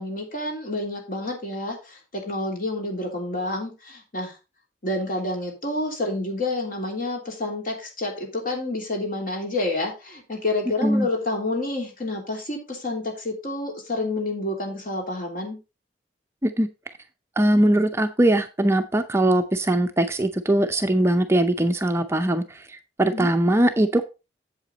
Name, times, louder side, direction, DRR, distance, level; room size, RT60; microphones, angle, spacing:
voice 1, 0.0-4.3 4.8-15.6 23.1-23.3, left 2 dB, 50° left, 2 dB, 3.0 m, -29 dB
voice 2, 17.4-24.0, right 1 dB, 15° right, 7 dB, 0.5 m, -21 dB
8.0 x 7.6 x 4.0 m, 0.28 s
head